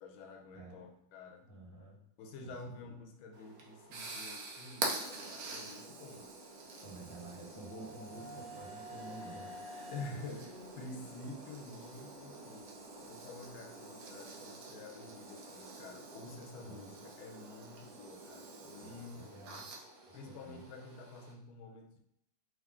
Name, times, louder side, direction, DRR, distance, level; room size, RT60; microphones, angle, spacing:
voice 1, 0.0-1.4 2.2-6.3 9.9-12.7 13.0-19.6 20.1-22.0, left 3 dB, 80° left, 3 dB, 1.4 m, -49 dB
voice 2, 0.5-0.9 1.4-2.0 2.4-2.5 6.8-10.4 16.6-16.9 18.8-19.7 20.1-20.7, right 2 dB, 15° left, -6 dB, 0.9 m, -51 dB
sound 1, 3.3-21.3, right 3 dB, 60° right, 1.0 m, -46 dB
sound 2, 6.7-12.6, equal, 25° right, 0.8 m, -51 dB
3.7 x 3.4 x 3.5 m, 0.77 s
omnidirectional pair, 2.3 m